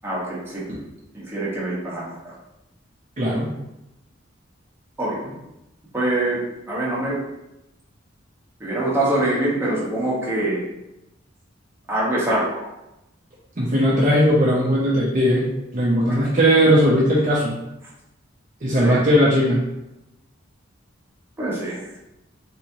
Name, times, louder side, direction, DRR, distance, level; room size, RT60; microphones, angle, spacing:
voice 1, 0.0-0.6 1.1-2.3 5.0-5.3 5.9-6.4 6.7-7.2 8.6-10.7 11.9-12.6 16.1-16.2 18.8-19.0 21.4-21.9, right 1 dB, 10° right, -7 dB, 1.1 m, -24 dB
voice 2, 3.2-3.5 13.6-15.4 15.7-17.5 18.6-19.6, equal, 40° right, -6 dB, 0.7 m, -18 dB
3.4 x 3.0 x 2.7 m, 0.92 s
head